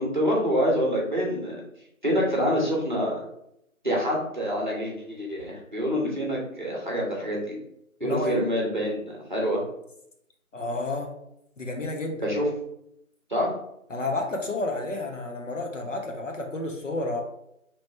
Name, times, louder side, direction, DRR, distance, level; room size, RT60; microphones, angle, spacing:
voice 1, 0.0-1.6 2.0-3.2 3.8-7.6 8.0-9.6 12.2-12.5 13.3-13.5, equal, 35° right, -3 dB, 0.9 m, -26 dB
voice 2, 8.0-8.4 10.5-11.1 11.6-12.2 13.9-17.2, left 2 dB, 60° left, 1 dB, 0.9 m, -30 dB
3.1 x 3.1 x 4.2 m, 0.78 s
figure-of-eight pair, 175°, 43 cm